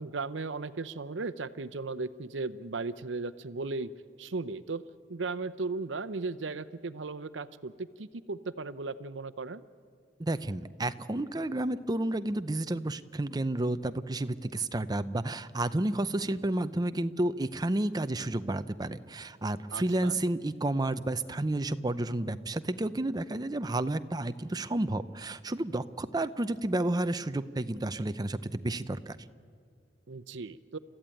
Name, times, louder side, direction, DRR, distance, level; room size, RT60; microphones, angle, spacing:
voice 1, 0.0-3.9 4.2-4.8 5.1-9.6 19.7-20.2 30.1-30.8, right 3 dB, 85° right, 14 dB, 0.8 m, -36 dB
voice 2, 10.2-29.2, right 1 dB, 20° right, 12 dB, 0.6 m, -31 dB
30.0 x 14.0 x 9.1 m, 2.2 s
head